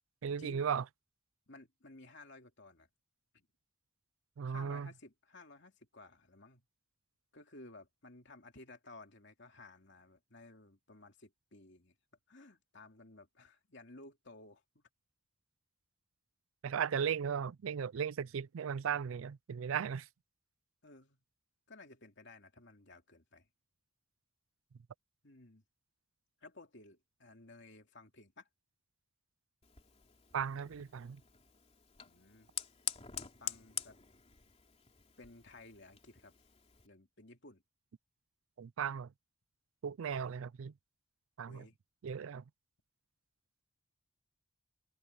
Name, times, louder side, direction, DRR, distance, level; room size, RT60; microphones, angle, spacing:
voice 1, 0.2-0.8 4.4-4.9 16.6-20.1 30.3-31.2 38.6-39.1 39.8-40.7 41.4-41.7 42.0-42.4, right 7 dB, 80° right, 0.4 m, -36 dB
voice 2, 1.5-2.9 3.3-3.5 4.4-6.6 7.3-11.9 12.3-14.9 20.8-21.2 21.7-23.5 25.2-25.6 26.4-28.5 32.0-32.5 33.4-34.0 35.2-36.3 36.8-37.6 41.4-41.8, left 2 dB, 60° left, 3.0 m, -56 dB
Fire, 29.6-36.9, left 8 dB, 30° left, 2.9 m, -46 dB
head